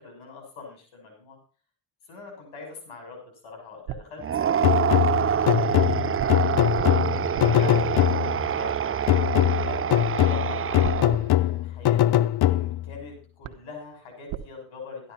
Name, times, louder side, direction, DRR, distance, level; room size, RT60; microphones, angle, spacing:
voice 1, 0.0-1.4 2.1-5.0 5.3-6.4 7.4-9.9 10.3-15.1, left 4 dB, 80° left, 3 dB, 6.6 m, -44 dB
sound 1, 3.4-5.0 6.2-9.5 10.8-12.7 13.1-13.2 13.4-14.5, right 12 dB, 80° right, 1.2 m, -42 dB
sound 2, 4.2-11.4, right 8 dB, 30° right, 0.5 m, -26 dB
sound 3, 4.6-8.5 9.1-13.0, left 13 dB, 55° left, 0.6 m, -22 dB
13.0 x 11.0 x 4.3 m, 0.41 s
supercardioid pair, 65°, 47 cm